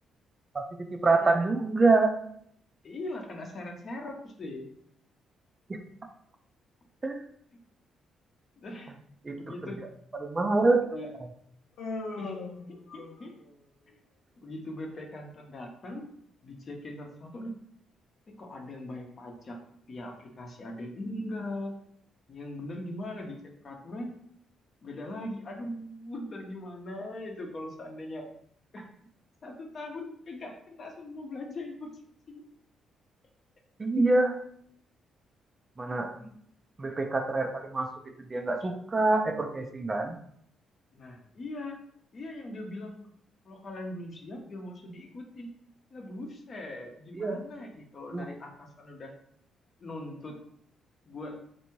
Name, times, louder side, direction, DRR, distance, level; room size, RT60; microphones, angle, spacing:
voice 1, 0.5-2.1 5.7-5.8 7.0-7.2 9.2-9.5 10.2-10.8 33.8-34.4 35.8-36.1 36.8-37.9 38.3-40.2 47.1-47.4 48.1-48.3, right 3 dB, 25° right, 4 dB, 0.4 m, -26 dB
voice 2, 2.8-4.7 8.6-8.9 9.3-9.8 10.9-11.1 12.2-13.3 14.4-16.1 16.4-17.5 18.4-19.6 19.9-21.7 22.3-23.4 23.6-24.1 24.8-28.3 28.7-28.9 29.4-31.9 32.3-32.4 36.2-36.3 40.9-41.8 42.1-43.0 43.4-45.5 45.9-49.1 49.8-50.4 51.1-51.4, left 1 dB, 45° left, 2 dB, 0.7 m, -40 dB
Human voice, 11.8-13.5, left 3 dB, 85° left, 0.6 m, -38 dB
3.3 x 2.7 x 3.0 m, 0.66 s
cardioid pair, 90°, 0 cm